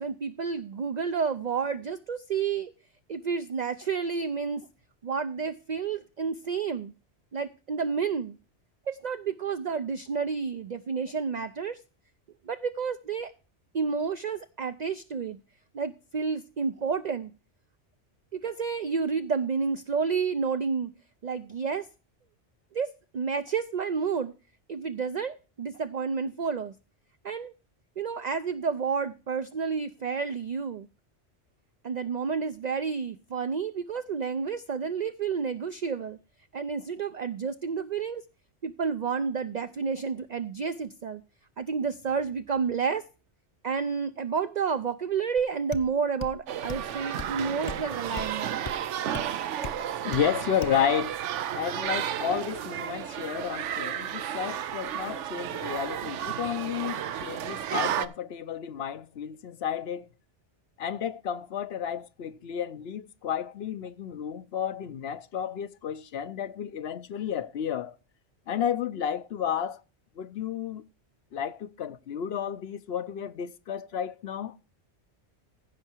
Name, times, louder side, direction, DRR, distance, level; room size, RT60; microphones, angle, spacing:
voice 1, 0.0-2.7 3.1-4.7 5.0-6.9 7.3-8.4 8.9-11.8 12.5-13.3 13.7-15.4 15.7-17.3 18.3-20.9 21.2-21.9 22.7-24.3 24.7-26.7 27.2-27.5 28.0-30.9 31.8-36.2 36.5-38.2 38.6-41.2 41.6-43.0 43.6-48.6, right 5 dB, 50° right, 0.6 m, -30 dB
sound 1, 45.4-45.5 45.7-45.9 46.2-46.4 46.7-46.9 47.2-47.3 47.7-47.8 48.2-48.3 48.7-48.8 49.1-49.3 49.6-49.8 50.1-50.3 50.6-50.8, left 4 dB, 30° left, 0.6 m, -37 dB
sound 2, 46.5-58.1, right 10 dB, 85° right, 1.0 m, -33 dB
voice 2, 50.0-51.2 51.5-60.1 60.8-68.0 68.5-69.8 70.2-70.8 71.3-74.5, left 8 dB, 65° left, 0.9 m, -32 dB
15.5 x 5.8 x 4.4 m
omnidirectional pair, 1.2 m